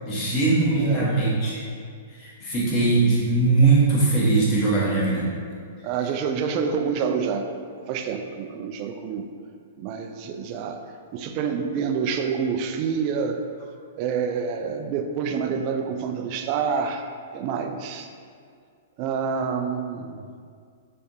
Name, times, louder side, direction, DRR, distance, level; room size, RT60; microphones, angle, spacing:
voice 1, 0.1-1.6 2.2-5.3, right 3 dB, 35° left, -7 dB, 1.3 m, -20 dB
voice 2, 0.8-1.1 5.8-7.5 7.9-9.3 9.8-10.8 11.1-13.4 14.0-17.1 17.3-18.1 19.0-20.3, right 6 dB, 45° right, 5 dB, 0.3 m, -27 dB
3.4 x 3.3 x 2.7 m, 2.2 s
hypercardioid pair, 120°, 0 cm